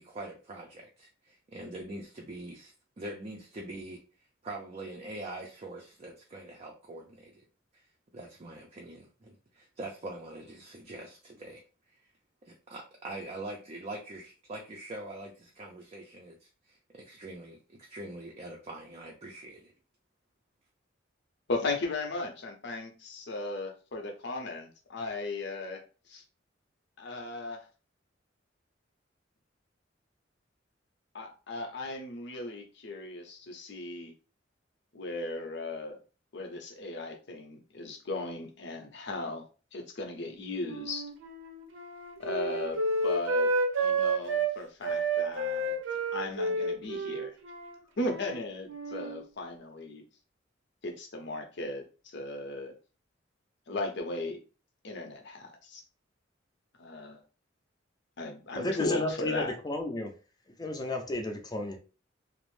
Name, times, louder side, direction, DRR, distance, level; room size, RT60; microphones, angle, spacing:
voice 1, 0.0-4.0 4.4-7.4 7.7-7.8 8.1-11.6 12.4-19.7, right 2 dB, 35° right, 0.4 m, -43 dB
voice 2, 21.5-26.2 27.0-27.7 31.1-34.1 34.9-36.0 36.3-39.4 39.7-41.1 42.2-43.5 43.8-45.8 46.1-47.4 48.0-50.0 50.8-52.8 53.7-54.4 54.8-55.8 56.8-57.2 58.2-59.5, left 2 dB, 65° left, 0.7 m, -37 dB
Wind instrument woodwind instrument, 40.6-44.5 44.8-48.4 48.7-49.2, right 2 dB, 85° right, 0.6 m, -31 dB
voice 3, 58.6-60.1 60.6-61.8, left 1 dB, 20° left, 0.5 m, -32 dB
2.5 x 2.0 x 3.1 m
head